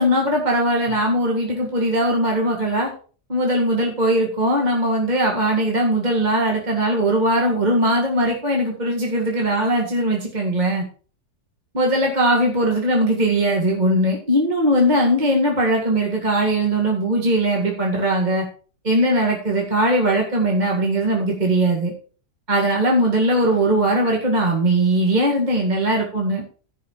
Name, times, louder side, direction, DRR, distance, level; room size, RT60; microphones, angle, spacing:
voice 1, 0.0-2.9 3.3-10.8 11.7-18.5 18.8-21.9 22.5-26.4, right 1 dB, 25° right, -1 dB, 2.0 m, -20 dB
15.0 x 5.6 x 4.5 m, 0.40 s
omnidirectional pair, 1.8 m